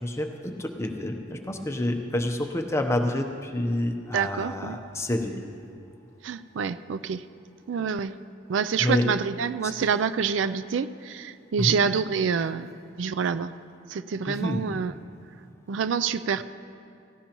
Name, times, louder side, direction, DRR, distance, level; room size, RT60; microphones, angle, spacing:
voice 1, 0.0-5.4 8.8-9.1 9.6-9.7 11.6-11.8 14.3-14.6, left 1 dB, 15° left, 4 dB, 0.8 m, -28 dB
voice 2, 4.1-4.8 6.2-7.2 7.7-8.1 8.5-13.5 13.9-14.9 15.7-16.4, right 6 dB, 70° right, 13 dB, 0.4 m, -27 dB
17.0 x 16.5 x 3.0 m, 2.6 s
head